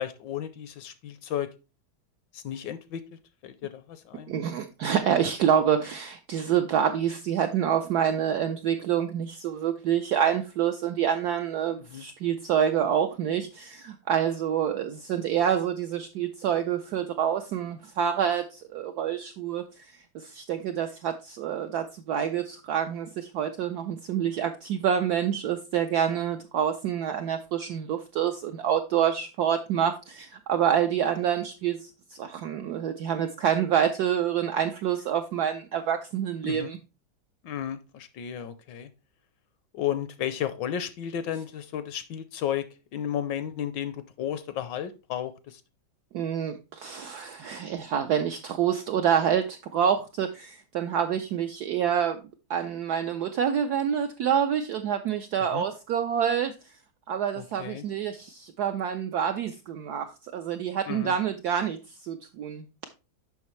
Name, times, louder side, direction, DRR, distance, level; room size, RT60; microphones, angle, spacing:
voice 1, 0.0-1.5 2.3-4.3 11.8-12.0 36.4-36.7 37.4-38.9 39.7-42.7 42.9-45.6 55.5-55.7 57.4-57.9 60.9-61.2, left 10 dB, 75° left, 1.1 m, -33 dB
voice 2, 4.3-36.8 46.1-52.2 52.5-56.5 57.1-62.7, right 9 dB, 80° right, 0.9 m, -27 dB
7.1 x 5.6 x 3.1 m
omnidirectional pair, 2.2 m